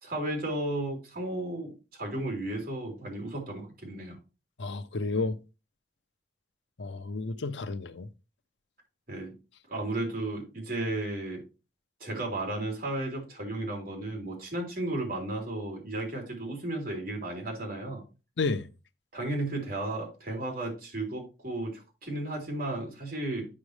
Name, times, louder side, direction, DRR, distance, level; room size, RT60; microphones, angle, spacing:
voice 1, 0.0-1.7 2.0-4.2 9.1-9.3 9.7-11.4 12.0-18.0 19.1-23.5, right 2 dB, 55° right, 3.7 m, -34 dB
voice 2, 4.6-5.4 6.8-8.1 18.4-18.7, left 3 dB, 90° left, 0.7 m, -31 dB
8.5 x 6.1 x 3.2 m
head